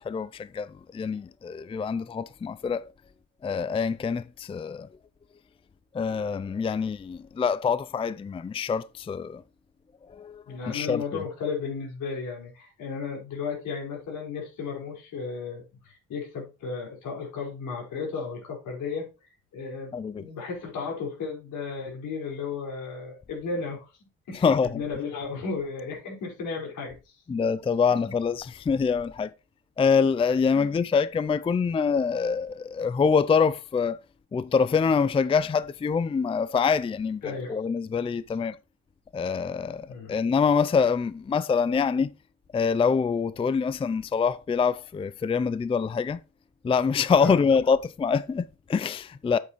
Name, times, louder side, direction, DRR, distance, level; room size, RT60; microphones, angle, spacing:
voice 1, 0.0-2.8 3.4-4.9 5.9-9.4 10.1-11.2 19.9-20.2 24.3-24.8 27.3-29.3 29.8-34.0 34.3-38.6 39.1-42.1 42.5-46.2 46.6-49.4, left 5 dB, 20° left, 0.4 m, -25 dB
voice 2, 10.4-19.1 19.5-23.9 24.3-27.2 28.0-28.1 30.5-30.9 37.2-37.6 39.9-40.2 47.2-47.5, left 5 dB, 80° left, 4.9 m, -34 dB
8.5 x 8.2 x 3.1 m
cardioid pair, 90°, 30 cm